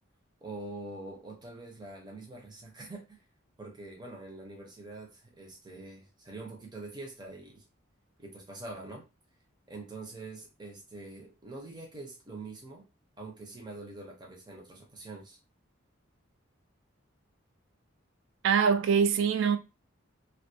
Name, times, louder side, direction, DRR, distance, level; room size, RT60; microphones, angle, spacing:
voice 1, 0.4-3.2 3.6-7.6 8.2-9.0 9.7-12.8 13.2-15.4, right 2 dB, 20° right, 0.6 m, -44 dB
voice 2, 18.4-19.6, right 6 dB, 60° right, 0.3 m, -24 dB
2.2 x 2.1 x 2.6 m
head